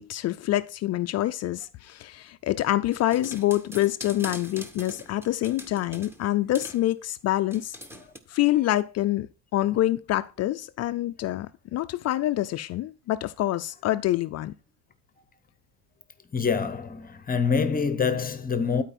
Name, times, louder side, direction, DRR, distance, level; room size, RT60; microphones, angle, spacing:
voice 1, 0.0-7.8 8.3-9.3 9.5-14.5, left 15 dB, 40° left, 0.4 m, -26 dB
sound 1, 2.9-6.2 6.6-6.8 7.5-8.2, equal, 5° right, 1.0 m, -42 dB
voice 2, 16.3-18.8, left 5 dB, 20° left, 0.8 m, -25 dB
12.0 x 4.6 x 4.2 m
supercardioid pair, 125°, 45 cm